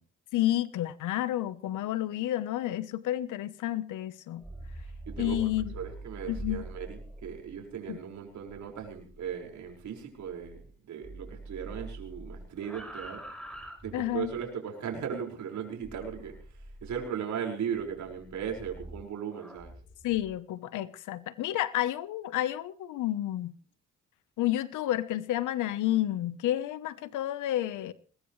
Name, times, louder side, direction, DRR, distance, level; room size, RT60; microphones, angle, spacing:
voice 1, 0.3-4.4 5.2-5.7 6.3-6.6 7.9-8.0 13.9-14.3 20.0-23.5 24.4-27.9, left 13 dB, 85° left, 1.1 m, -30 dB
sound 1, 4.3-10.8 11.0-14.4 15.8-17.1 17.7-20.3, right 1 dB, ahead, 5.9 m, -45 dB
voice 2, 5.1-5.4 5.7-10.6 10.9-13.2 13.8-16.3 16.8-19.7, right 7 dB, 70° right, 5.6 m, -37 dB
20.5 x 20.5 x 3.3 m
cardioid pair, 90°, 30 cm